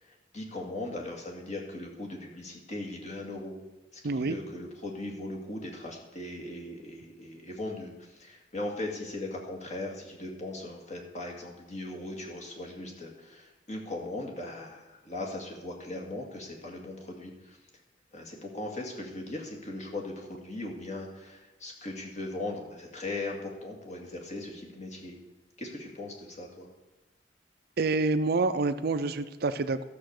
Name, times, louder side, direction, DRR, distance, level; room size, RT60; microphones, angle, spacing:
voice 1, 0.0-3.5 3.9-17.6 18.1-25.2 25.6-26.7, left 2 dB, 40° left, 0 dB, 2.1 m, -39 dB
voice 2, 4.0-4.4 27.8-29.8, right 3 dB, 60° right, 12 dB, 0.5 m, -27 dB
12.5 x 6.9 x 6.5 m, 1.1 s
head